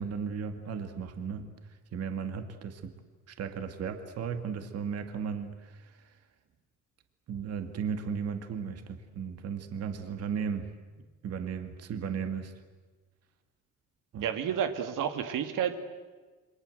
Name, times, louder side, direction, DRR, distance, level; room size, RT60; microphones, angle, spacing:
voice 1, 0.0-1.5 1.9-2.9 3.3-6.0 7.3-12.5 14.1-14.3, right 6 dB, 50° right, 7 dB, 2.2 m, -35 dB
voice 2, 14.2-15.8, right 9 dB, 90° right, 7 dB, 2.4 m, -30 dB
29.0 x 25.5 x 8.0 m, 1.3 s
cardioid pair, 175°, 31 cm